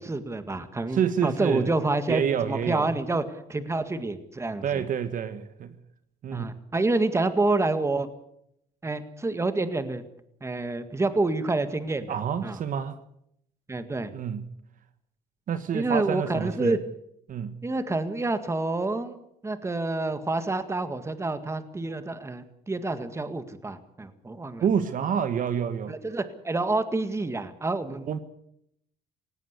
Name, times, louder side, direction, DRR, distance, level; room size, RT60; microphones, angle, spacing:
voice 1, 0.0-3.2 3.5-4.8 6.3-8.1 8.8-10.0 10.4-12.1 12.4-12.6 13.7-14.1 15.7-16.8 17.6-24.6 25.9-28.1, right 2 dB, 15° right, 1.8 m, -28 dB
voice 2, 0.9-1.7 2.1-2.9 4.6-5.8 6.2-6.5 12.1-13.0 14.1-14.5 15.5-16.8 17.3-17.6 24.6-26.0 28.1-28.2, right 8 dB, 50° right, 1.4 m, -28 dB
18.0 x 17.5 x 8.2 m
cardioid pair, 110°, 17 cm